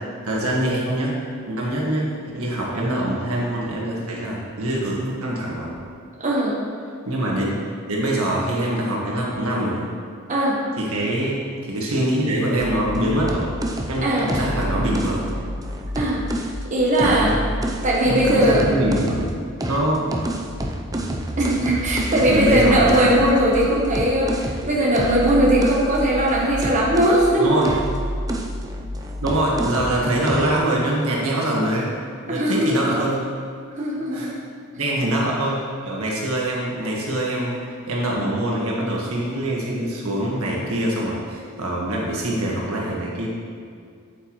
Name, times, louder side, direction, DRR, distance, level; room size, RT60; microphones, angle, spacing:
voice 1, 0.3-1.1 1.5-2.1 2.3-5.8 7.1-7.6 7.8-9.9 10.8-13.5 13.9-15.4 17.0-17.4 18.0-19.3 19.7-20.1 22.2-23.1 26.6-26.7 27.4-27.7 29.2-31.9 32.2-33.2 34.1-34.3 34.8-43.3, right 1 dB, 90° right, -3 dB, 1.7 m, -24 dB
voice 2, 6.2-6.6 10.3-10.6 14.0-14.3 15.9-17.4 17.8-18.7 21.4-27.7 32.3-33.0 33.8-34.4, right 1 dB, 35° right, -4 dB, 1.2 m, -19 dB
sound 1, 12.6-16.6 17.0-19.3 19.6-27.3 27.6-30.0 30.3-30.6, equal, 15° right, 0.6 m, -28 dB
8.1 x 8.0 x 3.2 m, 2.2 s
head